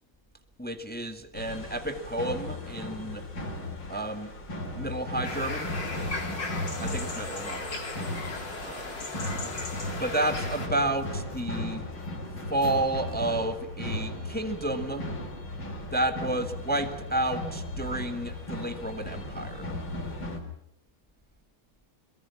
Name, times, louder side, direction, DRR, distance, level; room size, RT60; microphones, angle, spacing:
voice 1, 0.6-3.2 3.9-4.3 4.7-5.8 6.8-7.9 8.6-9.1 10.0-11.9 12.5-15.1 15.9-19.7, right 1 dB, 5° left, 7 dB, 1.6 m, -31 dB
sound 1, 1.3-20.4, left 1 dB, 90° left, 5.1 m, -36 dB
sound 2, 5.2-10.7, left 3 dB, 65° left, 4.4 m, -36 dB
27.0 x 22.5 x 6.0 m, 0.73 s
omnidirectional pair, 2.2 m